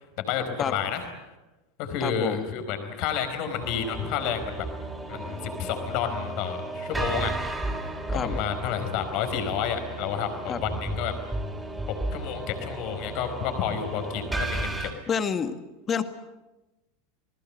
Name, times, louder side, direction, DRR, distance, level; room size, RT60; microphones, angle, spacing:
voice 1, 0.2-1.0 1.8-4.7 5.1-7.3 8.1-11.1 12.1-14.9, left 8 dB, 50° left, 8 dB, 4.7 m, -30 dB
voice 2, 2.0-2.5 8.1-8.4 10.5-10.6 15.1-15.6 15.9-16.0, left 7 dB, 30° left, 10 dB, 1.9 m, -28 dB
sound 1, 3.6-14.9, right 2 dB, 10° right, 5.2 m, -34 dB
28.0 x 20.5 x 7.9 m, 1.0 s
figure-of-eight pair, 85°, 0 cm